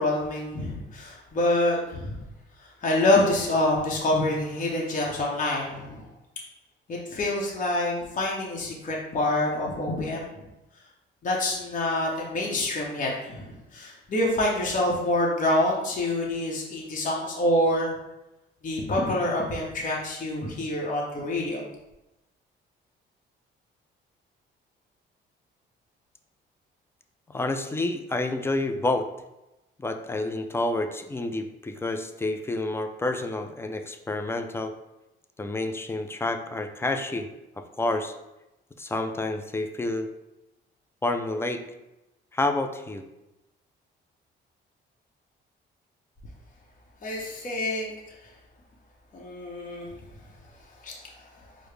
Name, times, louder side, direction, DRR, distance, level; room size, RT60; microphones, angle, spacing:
voice 1, 0.0-2.2 2.6-6.0 6.9-10.5 11.2-13.5 13.7-18.0 18.6-21.6 47.0-47.9 49.1-49.9 50.8-51.0, left 1 dB, 40° left, -3 dB, 0.8 m, -26 dB
voice 2, 27.3-29.1 29.8-34.7 35.4-37.3 37.8-38.1 38.8-40.1 41.0-41.6 42.3-43.0, left 2 dB, 10° left, 7 dB, 0.3 m, -29 dB
4.7 x 2.0 x 3.1 m, 0.97 s
cardioid pair, 90°, 20 cm